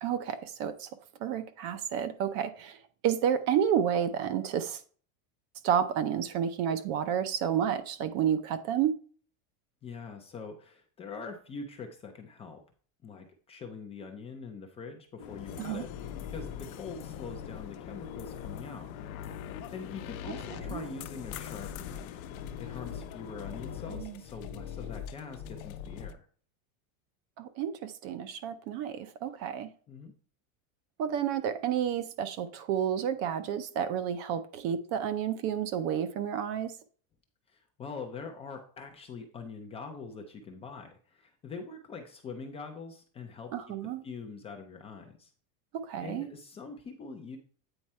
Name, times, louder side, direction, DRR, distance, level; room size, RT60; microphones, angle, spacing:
voice 1, 0.0-0.9 1.2-2.8 3.0-4.8 5.6-8.9 15.6-15.8 20.7-20.8 23.9-24.2 27.4-29.7 31.0-36.7 43.5-44.0 45.7-46.3, right 9 dB, 35° right, 0.6 m, -30 dB
voice 2, 9.8-12.6 13.0-15.9 16.3-18.9 19.7-22.2 22.6-26.3 29.9-30.1 37.5-43.5 44.0-45.3 46.0-47.4, left 5 dB, 15° left, 0.5 m, -43 dB
sound 1, 15.2-23.9, left 9 dB, 60° left, 0.9 m, -46 dB
sound 2, 15.5-26.1, left 8 dB, 90° left, 0.8 m, -43 dB
8.9 x 4.5 x 4.2 m
cardioid pair, 180°, 41 cm